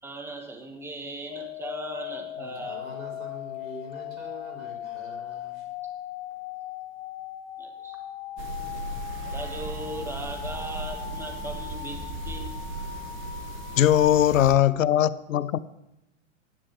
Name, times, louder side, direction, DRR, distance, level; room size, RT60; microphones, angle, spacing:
voice 1, 0.0-2.8 7.6-8.0 9.2-12.4, right 2 dB, 5° right, 1.5 m, -38 dB
sound 1, 1.3-14.2, left 13 dB, 45° left, 0.8 m, -39 dB
voice 2, 2.4-5.7, left 1 dB, 90° right, 5.0 m, -43 dB
sound 2, 8.4-14.5, right 2 dB, 30° right, 1.5 m, -37 dB
voice 3, 13.8-15.6, left 11 dB, 75° left, 0.6 m, -20 dB
15.0 x 10.0 x 3.3 m
hypercardioid pair, 110°, 40 cm